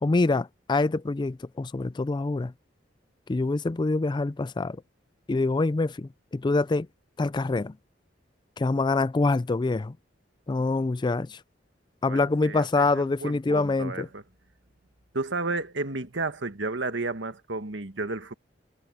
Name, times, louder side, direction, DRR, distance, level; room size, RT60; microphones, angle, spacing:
voice 1, 0.0-2.5 3.3-4.8 5.3-6.9 7.2-7.7 8.6-9.9 10.5-11.4 12.0-14.1, left 3 dB, 25° left, 0.4 m, -25 dB
voice 2, 12.0-14.2 15.1-18.3, right 3 dB, 70° right, 1.7 m, -32 dB
head